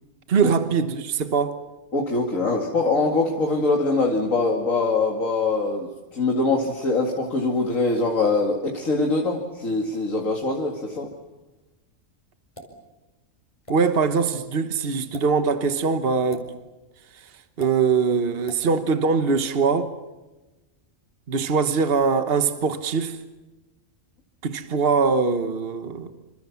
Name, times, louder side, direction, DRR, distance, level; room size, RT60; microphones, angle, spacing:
voice 1, 0.3-1.6 13.7-16.5 17.6-19.9 21.3-23.2 24.4-26.1, right 5 dB, 50° right, 1.4 m, -22 dB
voice 2, 1.9-11.1, left 3 dB, 80° left, 2.7 m, -23 dB
sound 1, 12.6-12.8 13.7-13.8 15.0-15.3 16.3-16.5 17.6-17.7 18.5-18.6, equal, 25° left, 4.7 m, -41 dB
27.0 x 26.5 x 7.2 m
omnidirectional pair, 1.4 m